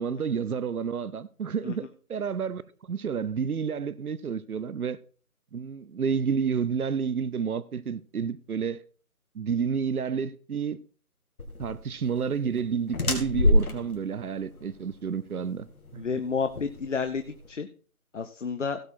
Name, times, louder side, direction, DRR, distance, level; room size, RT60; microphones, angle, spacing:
voice 1, 0.0-5.0 5.5-8.8 9.3-10.8 11.6-15.7 15.9-16.0, right 6 dB, 75° right, 0.8 m, -30 dB
sound 1, 11.4-17.5, left 1 dB, 75° left, 2.9 m, -29 dB
voice 2, 16.0-17.7 18.1-18.8, left 5 dB, 55° left, 0.9 m, -30 dB
16.5 x 6.3 x 4.3 m
figure-of-eight pair, 165°, 44 cm